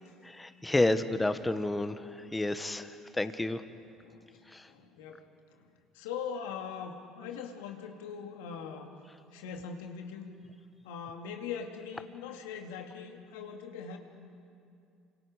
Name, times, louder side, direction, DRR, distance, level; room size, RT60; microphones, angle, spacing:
voice 1, 0.2-3.6 4.5-4.7, left 2 dB, 15° left, 10 dB, 1.4 m, -30 dB
voice 2, 4.7-5.3 5.9-8.9 9.3-10.3 10.8-14.0, left 6 dB, 80° left, 3 dB, 2.2 m, -41 dB
29.5 x 26.5 x 5.1 m, 2.4 s
hypercardioid pair, 65°, 0 cm